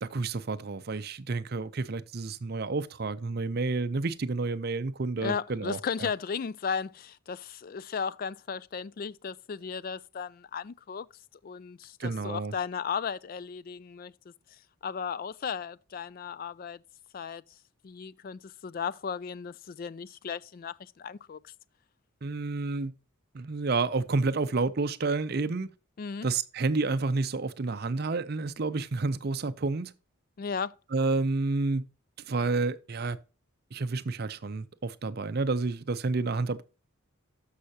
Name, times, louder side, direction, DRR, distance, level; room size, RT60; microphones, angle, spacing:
voice 1, 0.0-6.1 12.0-12.5 22.2-22.9 23.3-25.7 26.2-29.9 30.9-31.8 32.3-33.2 33.7-36.6, right 3 dB, 45° right, 0.5 m, -30 dB
voice 2, 5.2-11.1 11.4-14.1 14.8-16.8 17.1-17.4 17.8-21.5 26.0-26.3 30.4-30.7, left 6 dB, 40° left, 0.3 m, -35 dB
13.0 x 5.6 x 2.8 m
head